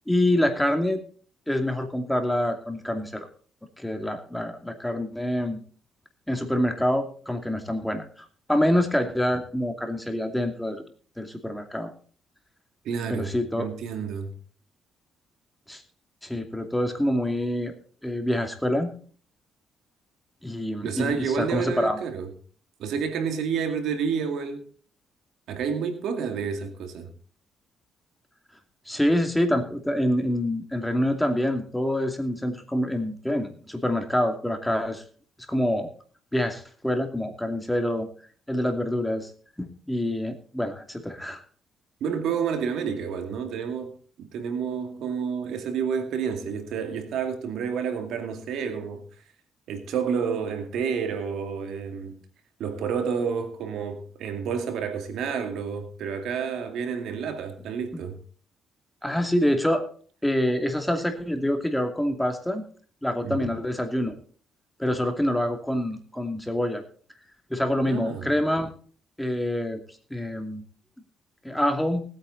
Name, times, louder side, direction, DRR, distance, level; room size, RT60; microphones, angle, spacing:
voice 1, 0.1-1.0 1.5-3.3 3.8-5.6 6.3-8.1 8.5-10.8 11.2-11.9 13.1-13.7 15.7-15.8 16.2-17.8 18.0-18.9 20.4-22.0 28.9-35.0 35.5-35.9 36.3-38.1 38.5-39.3 39.6-41.4 59.0-59.9 60.2-62.6 63.0-64.1 64.8-66.8 67.5-68.7 69.2-69.8 70.1-70.6 71.4-72.0, left 1 dB, 5° left, 2.6 m, -26 dB
voice 2, 12.8-14.3 20.8-22.3 22.8-24.7 25.5-27.1 42.0-43.9 44.2-49.0 49.7-52.2 52.6-58.2 63.2-63.6 67.8-68.3, right 6 dB, 80° right, 2.4 m, -29 dB
19.0 x 8.9 x 4.1 m
cardioid pair, 90°, 0 cm